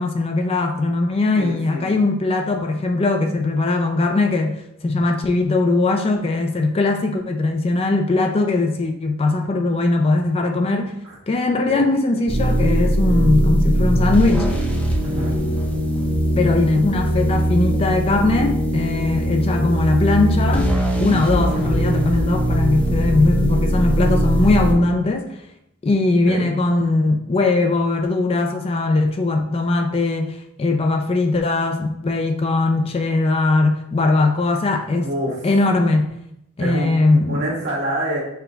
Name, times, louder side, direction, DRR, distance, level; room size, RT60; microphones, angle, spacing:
voice 1, 0.0-4.6 4.8-10.9 11.3-14.5 16.4-20.7 21.0-25.3 25.8-35.1 35.4-36.1 36.6-37.4, left 2 dB, 25° left, 4 dB, 0.4 m, -20 dB
voice 2, 1.4-2.0 11.0-11.2 11.7-11.8 15.0-15.4 21.3-21.4 26.3-26.5 35.0-35.3 36.6-36.9 37.3-38.2, right 1 dB, 55° right, -5 dB, 1.7 m, -26 dB
sound 1, 12.3-24.7, right 1 dB, 5° left, 0.8 m, -20 dB
5.6 x 2.3 x 3.8 m, 0.80 s
head